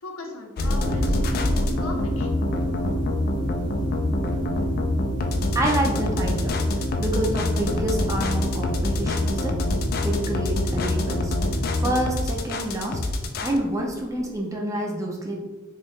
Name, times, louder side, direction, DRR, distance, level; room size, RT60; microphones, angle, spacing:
voice 1, 0.0-2.3, left 2 dB, 85° left, 2 dB, 0.6 m, -39 dB
sound 1, 0.6-13.6, left 1 dB, 45° left, 0.3 m, -25 dB
sound 2, 0.8-14.2, equal, 40° right, 1.1 m, -35 dB
sound 3, 1.7-7.3, equal, 60° right, 1.4 m, -40 dB
voice 2, 5.5-6.5 7.0-9.6 10.0-11.3 11.8-13.0 13.4-15.4, right 1 dB, 15° right, -1 dB, 0.5 m, -27 dB
3.1 x 2.8 x 3.1 m, 1.1 s
head